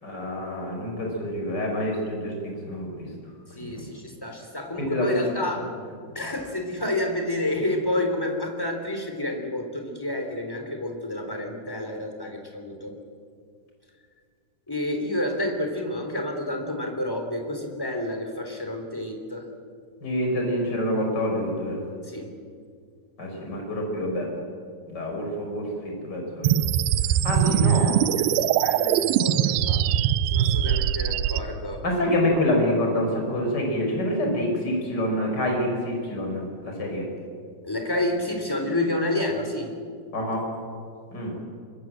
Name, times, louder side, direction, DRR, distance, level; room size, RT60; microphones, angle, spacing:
voice 1, 0.0-3.1 3.6-3.9 4.8-5.4 20.0-21.8 23.2-24.3 24.9-26.5 27.2-27.9 31.8-37.1 40.1-40.4 41.1-41.3, left 1 dB, 20° left, 0 dB, 6.1 m, -27 dB
voice 2, 3.5-5.7 6.1-13.0 14.7-19.5 22.0-22.3 27.4-29.8 30.2-31.8 37.6-39.7, left 1 dB, 5° left, 3 dB, 2.7 m, -30 dB
sound 1, 26.4-31.4, right 10 dB, 85° right, 2.2 m, -22 dB
25.5 x 23.0 x 7.8 m, 2.2 s
omnidirectional pair, 5.5 m